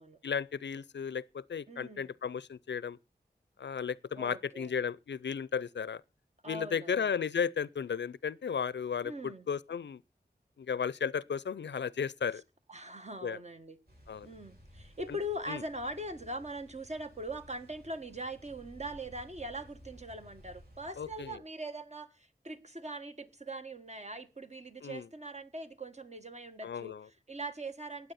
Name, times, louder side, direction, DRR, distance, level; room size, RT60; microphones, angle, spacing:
voice 1, 0.2-3.0 3.6-6.0 6.5-10.0 10.6-12.4 13.2-13.4 14.1-14.3 15.1-15.2 15.5-15.6 21.0-21.4 24.8-25.1 26.6-27.0, left 7 dB, 85° left, 0.5 m, -34 dB
voice 2, 1.7-2.1 4.2-4.7 6.4-7.1 9.0-9.5 12.7-13.8 14.2-28.1, right 1 dB, 40° right, 1.6 m, -41 dB
sound 1, 13.9-21.4, equal, 60° right, 6.9 m, -56 dB
16.0 x 9.7 x 4.2 m
cardioid pair, 45°, 18 cm